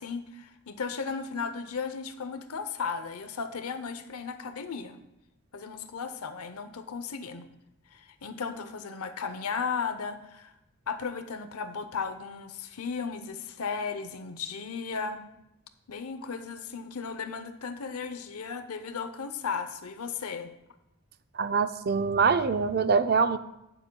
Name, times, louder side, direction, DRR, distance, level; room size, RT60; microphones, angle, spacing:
voice 1, 0.0-5.0 5.5-7.5 7.9-10.5 10.9-15.2 15.9-20.5, left 5 dB, 85° left, 9 dB, 0.7 m, -35 dB
voice 2, 21.3-23.4, right 5 dB, 45° right, 12 dB, 0.4 m, -24 dB
18.5 x 7.1 x 2.2 m, 0.88 s
head